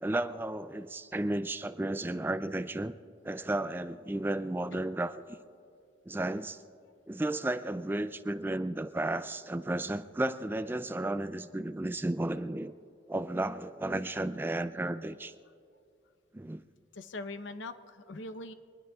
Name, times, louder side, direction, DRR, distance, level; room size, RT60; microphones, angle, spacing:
voice 1, 0.0-2.9 3.2-5.2 6.1-6.6 7.1-12.7 13.1-15.3 16.3-16.6, right 1 dB, 10° right, 12 dB, 0.3 m, -33 dB
voice 2, 16.9-18.5, left 2 dB, 90° left, 10 dB, 0.8 m, -42 dB
24.0 x 20.0 x 2.3 m, 2.4 s
head